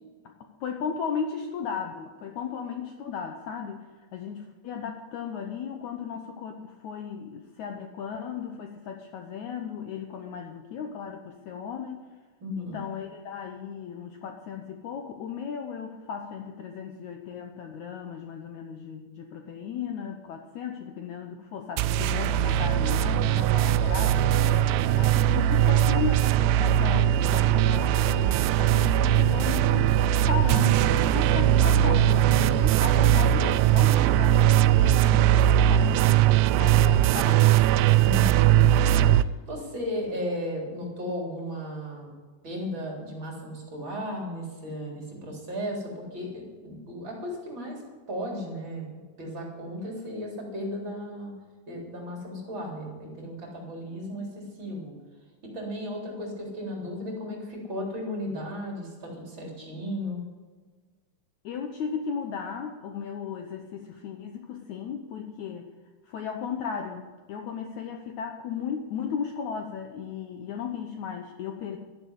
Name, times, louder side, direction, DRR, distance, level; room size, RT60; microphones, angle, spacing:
voice 1, 0.6-12.1 12.6-30.0 30.3-37.6 61.4-65.7 66.1-71.8, left 6 dB, 85° left, 4 dB, 1.6 m, -36 dB
voice 2, 12.4-12.9 30.5-30.7 38.0-42.2 42.4-47.8 48.1-48.9 49.2-51.3 51.7-54.9 55.4-60.2, equal, 30° right, -1 dB, 4.1 m, -35 dB
sound 1, 21.8-39.2, right 11 dB, 85° right, 2.7 m, -20 dB
13.0 x 11.0 x 8.2 m, 1.4 s
omnidirectional pair, 4.8 m